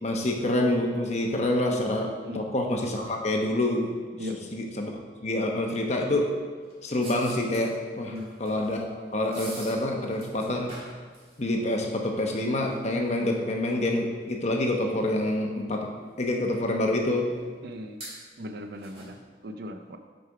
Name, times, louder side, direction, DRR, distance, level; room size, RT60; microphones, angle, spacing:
voice 1, 0.0-4.0 4.5-4.9 5.2-6.3 6.8-8.1 8.4-8.9 9.1-10.8 11.4-15.9 16.2-17.3, left 1 dB, 40° left, 1 dB, 0.9 m, -27 dB
sound 1, 6.6-14.9 15.2-15.3 16.2-16.4 17.3-17.6 18.0-19.1, right 1 dB, 35° right, 1.9 m, -47 dB
voice 2, 8.1-8.4 17.6-18.0 18.4-20.0, left 1 dB, 60° right, 7 dB, 0.5 m, -38 dB
6.6 x 5.2 x 4.6 m, 1.5 s
head